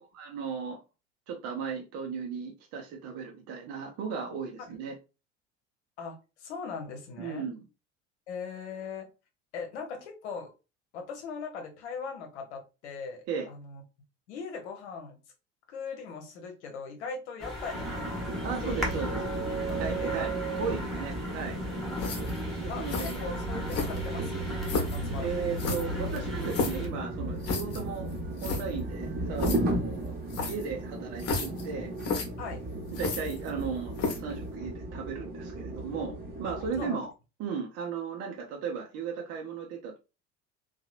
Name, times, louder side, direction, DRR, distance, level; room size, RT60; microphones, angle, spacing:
voice 1, 0.1-0.8 1.3-4.9 7.2-7.6 13.3-13.5 18.4-20.3 20.6-21.6 22.5-23.3 25.2-28.1 28.4-30.1 30.4-31.9 32.9-37.1 37.4-40.0, right 6 dB, 45° right, 0.7 m, -36 dB
voice 2, 6.0-7.5 8.3-9.1 9.5-10.5 10.9-13.8 14.3-15.2 15.7-18.3 18.6-18.9 19.4-20.2 22.7-24.5 24.9-25.6 32.4-32.6 36.4-37.0, left 5 dB, 70° left, 0.9 m, -40 dB
sound 1, 17.4-26.9, equal, ahead, 1.1 m, -38 dB
sound 2, 17.7-36.8, right 1 dB, 25° right, 1.2 m, -35 dB
sound 3, 22.0-22.4 22.9-23.2 23.7-24.2 24.6-25.0 25.6-26.9 27.4-27.8 28.1-28.2 28.4-28.6 29.4-29.6 30.3-30.7 31.2-31.6 32.0-32.3 32.9-33.6 34.0-34.3, left 4 dB, 45° left, 0.9 m, -32 dB
2.8 x 2.3 x 2.4 m
figure-of-eight pair, 65°, 35 cm